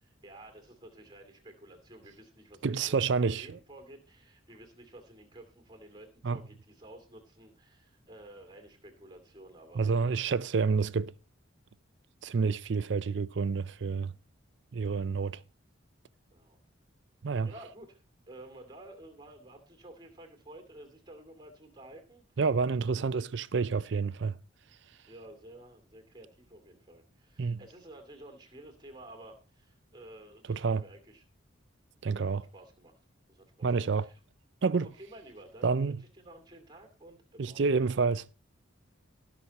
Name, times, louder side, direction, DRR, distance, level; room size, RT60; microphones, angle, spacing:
voice 1, 0.0-10.2 16.3-16.6 17.4-22.2 25.1-31.2 32.1-32.9 33.3-34.2 34.7-38.2, right 1 dB, 20° right, 2.3 m, -52 dB
voice 2, 2.6-3.6 6.2-6.4 9.8-11.1 12.2-14.1 14.7-15.4 17.2-17.5 22.4-24.3 27.4-27.6 30.5-30.8 32.0-32.4 33.6-34.1 34.6-34.9 35.6-36.0 37.4-38.2, right 5 dB, 60° right, 0.4 m, -28 dB
18.0 x 6.1 x 4.1 m
head